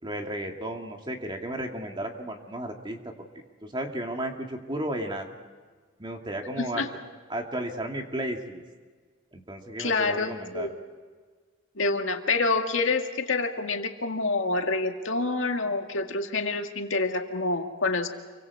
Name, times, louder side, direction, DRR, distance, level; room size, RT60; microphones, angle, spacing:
voice 1, 0.0-3.1 3.7-5.3 6.0-6.8 7.3-8.6 9.3-10.7, right 1 dB, 25° right, 2 dB, 2.3 m, -33 dB
voice 2, 6.6-6.9 9.8-10.8 11.8-18.1, left 3 dB, 90° left, 4 dB, 2.0 m, -27 dB
28.5 x 24.5 x 4.8 m, 1.5 s
head